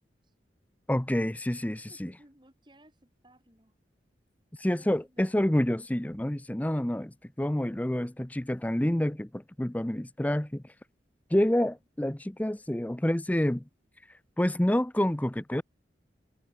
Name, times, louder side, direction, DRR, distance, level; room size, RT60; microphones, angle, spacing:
voice 1, 0.9-2.1 4.6-10.6 11.3-13.6 14.4-15.6, left 1 dB, 10° left, 0.5 m, -28 dB
voice 2, 1.9-3.8 4.7-5.5, right 1 dB, 25° right, 7.3 m, -59 dB
head